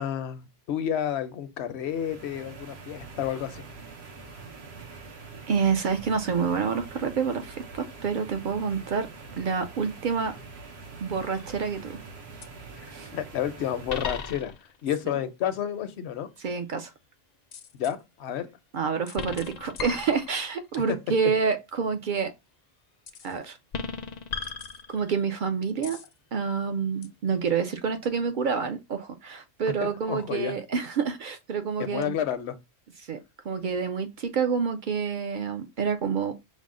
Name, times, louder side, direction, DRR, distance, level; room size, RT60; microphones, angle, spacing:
voice 1, 0.0-3.7 13.1-14.5 14.8-16.3 17.7-18.5 30.1-30.5 31.8-32.6, left 10 dB, 80° left, 0.9 m, -30 dB
sound 1, 1.8-14.4, right 4 dB, 75° right, 1.1 m, -44 dB
voice 2, 5.5-9.1 9.4-10.3 11.0-12.0 12.9-13.1 16.4-16.9 18.7-22.3 23.2-23.6 24.9-26.0 26.3-32.2 33.1-33.2 33.4-36.3, right 6 dB, 60° right, 0.6 m, -28 dB
sound 2, 11.3-11.7 12.4-12.5 13.9-14.8 17.5-17.9 19.1-20.7 23.1-23.3 23.7-25.3 25.8-26.1 27.0-27.1, left 6 dB, 55° left, 0.5 m, -36 dB
5.3 x 2.0 x 3.7 m
omnidirectional pair, 1.1 m